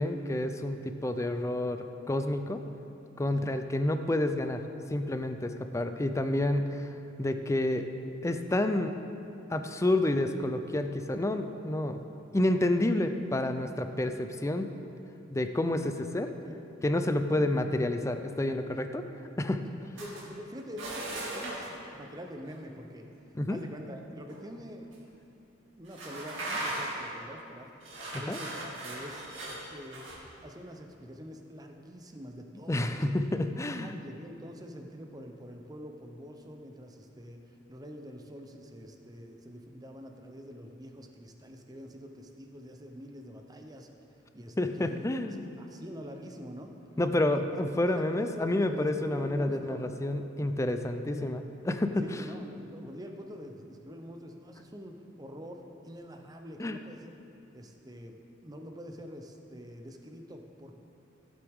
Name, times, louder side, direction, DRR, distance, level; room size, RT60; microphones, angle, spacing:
voice 1, 0.0-2.6 3.2-4.6 4.9-6.9 7.2-7.9 8.2-8.9 9.5-12.0 12.3-14.7 15.3-16.3 16.8-19.0 19.4-19.7 23.3-23.6 28.1-28.4 32.7-34.0 44.6-45.5 47.0-52.2 56.6-56.8, left 1 dB, 15° left, 8 dB, 0.4 m, -29 dB
voice 2, 20.0-24.9 25.8-27.7 28.2-29.3 29.7-30.1 30.4-33.1 33.7-43.9 44.3-46.7 47.3-47.4 47.8-49.8 51.0-51.3 52.0-57.1 57.5-60.7, equal, 20° right, 4 dB, 0.7 m, -45 dB
sound 1, 20.0-20.3 20.8-21.7 24.3-24.4 24.9-25.0 25.9-27.1 27.8-30.1, right 1 dB, 75° right, 2.3 m, -38 dB
15.5 x 8.0 x 3.6 m, 2.9 s
head